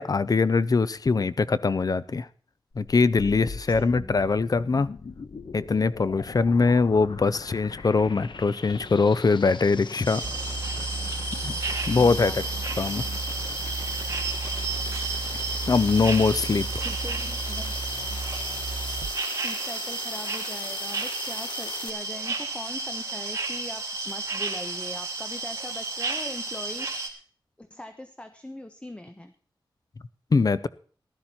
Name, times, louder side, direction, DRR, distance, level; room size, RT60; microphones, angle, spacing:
voice 1, 0.0-2.3 2.8-4.9 5.5-10.2 11.4-11.6 11.9-12.4 12.8-13.0 15.7-16.7 30.3-30.7, left 4 dB, 45° left, 17 dB, 0.6 m, -22 dB
sound 1, 2.7-21.9, left 4 dB, 65° left, 1.1 m, -40 dB
voice 2, 3.8-4.2 12.0-12.4 16.8-17.7 19.4-27.2 27.6-29.3, left 1 dB, 15° left, 8 dB, 1.1 m, -41 dB
sound 2, 10.0-27.1, right 3 dB, 35° right, 2.8 m, -32 dB
sound 3, 10.2-19.1, right 3 dB, 70° right, 1.1 m, -35 dB
15.0 x 12.5 x 4.3 m, 0.43 s
wide cardioid pair, 95°, 9 cm